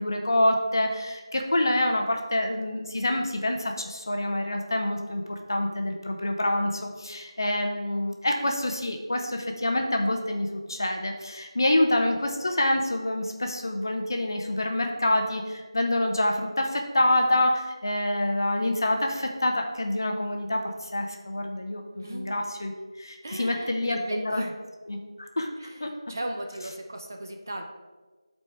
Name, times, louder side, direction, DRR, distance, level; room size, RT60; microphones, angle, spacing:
voice 1, 0.0-22.7 23.0-24.4 24.9-25.9, left 1 dB, 45° left, 3 dB, 0.8 m, -27 dB
voice 2, 22.0-22.4 23.2-24.5 25.6-27.6, right 1 dB, 35° right, 2 dB, 0.6 m, -37 dB
11.0 x 4.3 x 3.2 m, 1.3 s
figure-of-eight pair, 175°, 3 cm